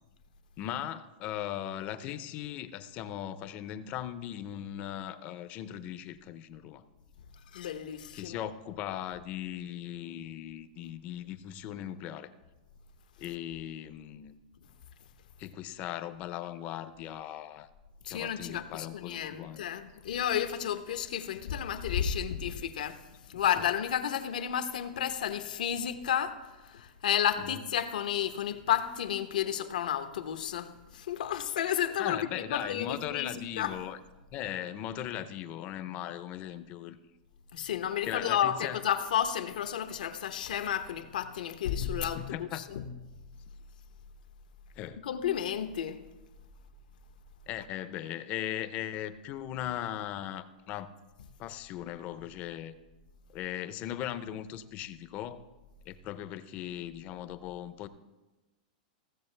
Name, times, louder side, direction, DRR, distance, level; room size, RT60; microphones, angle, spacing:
voice 1, 0.6-6.8 8.1-12.3 13.2-14.4 15.4-17.7 18.1-19.6 23.3-23.4 27.4-27.6 32.0-34.0 34.3-37.0 38.0-38.8 42.1-42.7 44.8-45.0 47.5-50.9 51.4-52.7 53.3-55.4 55.9-57.9, left 11 dB, 35° left, 0.5 m, -38 dB
voice 2, 7.5-8.5 18.0-23.0 23.3-33.3 33.6-33.7 37.5-42.8 45.0-46.0, left 9 dB, 85° left, 0.8 m, -32 dB
16.0 x 7.2 x 3.3 m
supercardioid pair, 155°, 4 cm